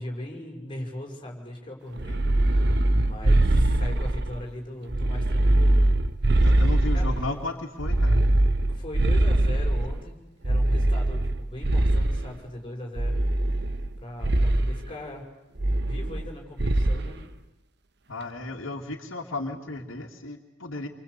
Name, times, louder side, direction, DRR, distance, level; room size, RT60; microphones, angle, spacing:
voice 1, 0.0-5.9 6.9-7.1 8.6-15.2 15.8-17.2, left 1 dB, 25° left, 1 dB, 6.2 m, -39 dB
sound 1, 2.0-4.4 4.9-7.3 7.8-10.0 10.4-12.3 13.0-13.9 14.2-14.7 15.6-16.3 16.6-17.1, right 1 dB, 55° right, 1.3 m, -22 dB
voice 2, 6.4-8.2 18.1-20.9, left 2 dB, 90° left, 2 dB, 2.6 m, -34 dB
29.5 x 24.5 x 8.3 m, 0.96 s
head